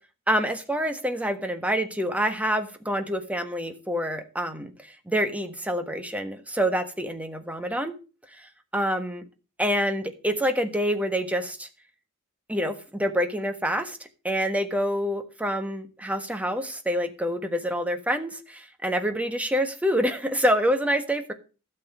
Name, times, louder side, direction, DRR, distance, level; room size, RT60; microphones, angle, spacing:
voice 1, 0.3-4.7 5.1-7.9 8.4-9.2 9.6-11.7 12.5-14.0 14.2-21.3, equal, 5° right, 8 dB, 1.3 m, -27 dB
12.5 x 6.9 x 6.9 m, 0.34 s
head